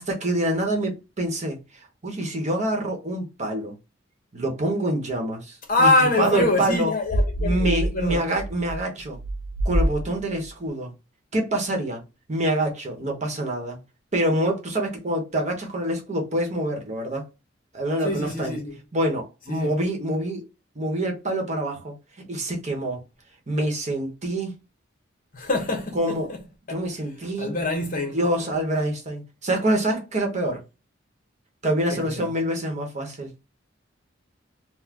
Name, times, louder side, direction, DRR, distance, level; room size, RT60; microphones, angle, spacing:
voice 1, 0.0-1.6 2.0-3.7 4.3-5.9 6.2-6.9 7.4-9.2 9.6-10.9 11.3-12.0 12.3-13.8 14.1-17.2 17.7-18.6 18.9-20.5 20.7-21.9 22.3-23.0 23.5-24.6 25.9-26.3 26.7-27.5 28.1-30.6 31.6-33.3, right 1 dB, 40° right, 1.0 m, -26 dB
voice 2, 5.7-8.2 18.0-18.8 19.5-19.8 25.3-26.4 26.7-26.8 27.4-28.2 31.9-32.3, left 2 dB, 45° left, 1.0 m, -24 dB
sound 1, 7.1-10.5, right 1 dB, 90° left, 0.6 m, -26 dB
4.0 x 2.1 x 2.8 m
head